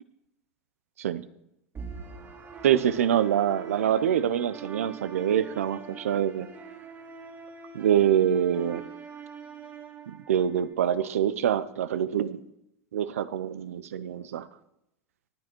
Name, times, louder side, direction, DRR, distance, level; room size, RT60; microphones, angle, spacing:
sound 1, 1.7-10.7, right 6 dB, 30° right, 2.4 m, -44 dB
voice 1, 2.6-6.5 7.7-8.8 10.1-12.4 12.9-14.5, right 9 dB, 80° right, 14 dB, 0.8 m, -25 dB
18.0 x 9.6 x 4.6 m, 0.83 s
hypercardioid pair, 95°, 8 cm